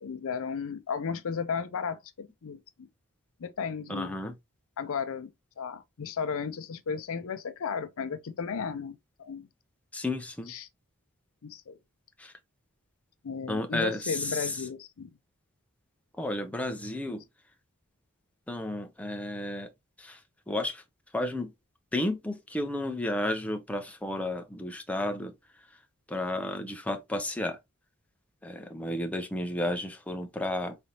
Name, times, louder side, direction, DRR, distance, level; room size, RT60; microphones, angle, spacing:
voice 1, 0.0-2.9 3.4-4.2 4.8-5.3 5.6-9.5 10.5-10.7 11.4-11.8 13.2-15.1, left 6 dB, 65° left, 0.5 m, -34 dB
voice 2, 3.9-4.3 9.9-10.5 12.2-12.3 13.5-14.5 16.2-17.2 18.5-19.7 20.0-20.2 20.5-20.8 21.1-21.5 21.9-25.3 26.1-27.6 28.4-30.8, left 1 dB, 5° left, 0.5 m, -32 dB
3.9 x 3.3 x 2.7 m
head